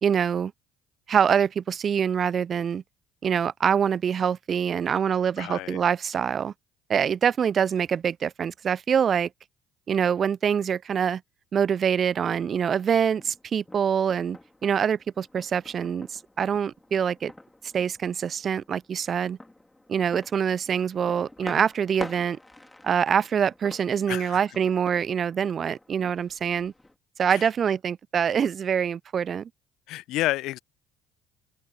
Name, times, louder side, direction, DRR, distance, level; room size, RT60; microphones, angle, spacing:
voice 1, 0.0-0.5 1.1-2.8 3.2-6.5 6.9-9.3 9.9-11.2 11.5-17.3 17.7-19.4 19.9-22.4 22.8-26.7 27.2-29.5, right 7 dB, 40° right, 0.5 m, -25 dB
voice 2, 5.4-5.8 21.4-21.6 24.1-24.4 27.3-27.5 29.9-30.6, left 17 dB, 60° left, 1.1 m, -30 dB
sound 1, 12.1-27.0, left 1 dB, 10° left, 3.6 m, -47 dB
open air
hypercardioid pair, 55°, 0 cm